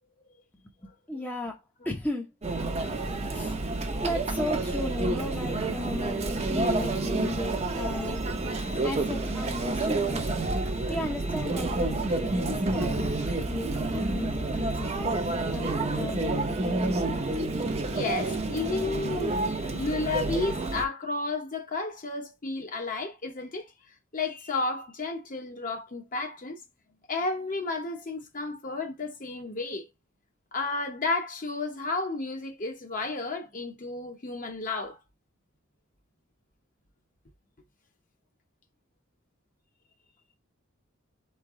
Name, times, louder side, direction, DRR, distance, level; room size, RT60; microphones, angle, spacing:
voice 1, 0.6-2.3 3.3-3.7 4.0-8.2 8.8-10.3 10.9-13.2 13.5-17.2, left 1 dB, 10° left, 0.6 m, -36 dB
Conversation / Chatter / Crowd, 2.4-20.8, right 2 dB, 30° right, 0.6 m, -29 dB
voice 2, 17.9-23.7 24.1-26.6 27.1-29.9 30.5-35.0, left 3 dB, 40° left, 0.9 m, -32 dB
4.4 x 3.3 x 3.6 m
head